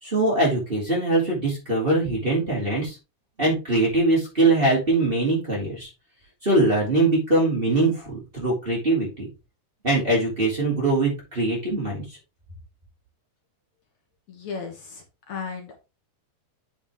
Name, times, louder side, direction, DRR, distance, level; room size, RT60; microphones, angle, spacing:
voice 1, 0.0-3.0 3.4-5.9 6.4-9.3 9.8-12.0, right 2 dB, 15° right, -5 dB, 2.9 m, -22 dB
voice 2, 14.3-15.8, left 5 dB, 60° left, 2 dB, 2.4 m, -35 dB
8.6 x 5.0 x 3.6 m, 0.28 s
omnidirectional pair, 3.7 m